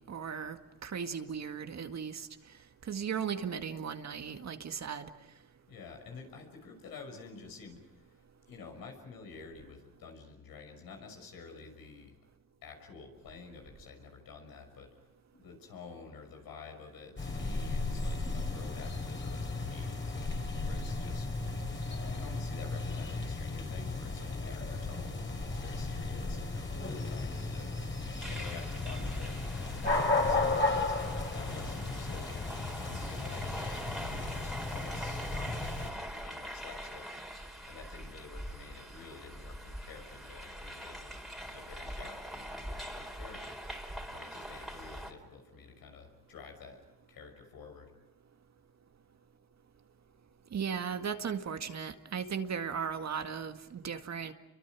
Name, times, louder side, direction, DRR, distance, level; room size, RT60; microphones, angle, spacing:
voice 1, 0.1-2.3 2.9-5.1 50.5-54.3, right 7 dB, 50° right, 7 dB, 2.0 m, -36 dB
voice 2, 5.7-12.1 12.6-15.1 15.3-21.3 21.9-30.9 31.3-32.4 32.8-37.4 37.7-46.8 47.1-47.9, left 5 dB, 75° left, 3 dB, 6.3 m, -50 dB
sound 1, 17.2-35.9, left 3 dB, 35° left, 4.9 m, -34 dB
sound 2, 28.2-45.1, equal, ahead, 3.9 m, -43 dB
30.0 x 24.0 x 6.2 m, 0.99 s
cardioid pair, 75°, 35 cm